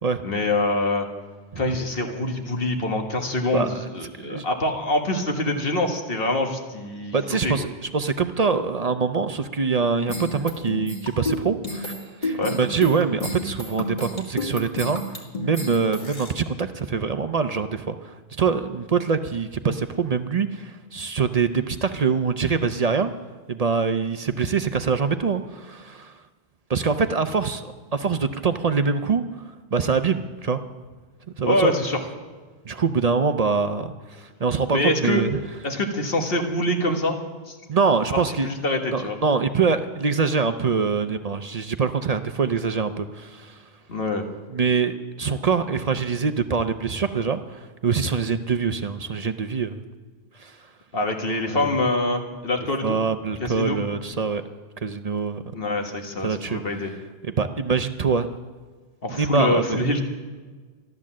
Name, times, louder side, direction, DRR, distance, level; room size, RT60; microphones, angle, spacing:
voice 1, 0.2-1.1 1.6-7.5 12.4-12.6 31.4-32.0 34.7-35.2 35.6-37.2 37.5-37.6 38.1-39.2 43.9-44.2 50.9-53.0 53.4-53.8 55.5-56.9 59.0-60.0, left 2 dB, 65° left, 3 dB, 1.8 m, -25 dB
voice 2, 3.5-3.9 4.2-4.5 7.1-11.9 12.2-23.1 23.5-26.1 26.7-29.2 29.7-30.6 31.4-31.7 32.6-35.4 37.7-38.5 38.9-43.6 44.5-49.8 50.4-50.6 51.5-51.8 52.8-54.4 54.8-55.4 56.2-56.6 57.2-58.3 59.1-59.9, right 5 dB, 45° right, 9 dB, 0.6 m, -24 dB
sound 1, 10.1-16.3, left 1 dB, 50° left, 2.4 m, -30 dB
13.5 x 12.0 x 7.4 m, 1.4 s
omnidirectional pair, 1.0 m